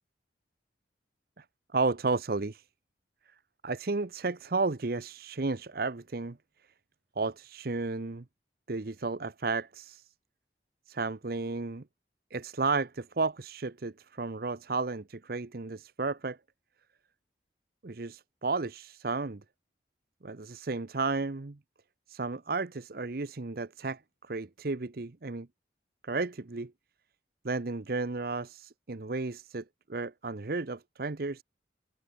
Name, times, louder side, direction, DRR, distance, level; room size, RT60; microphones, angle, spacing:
voice 1, 1.7-2.7 3.6-6.4 7.2-8.2 8.7-10.1 10.9-11.8 12.3-16.4 17.8-19.4 20.2-21.6 22.1-25.5 26.0-26.7 27.4-31.4, right 3 dB, 55° right, 0.8 m, -33 dB
open air
head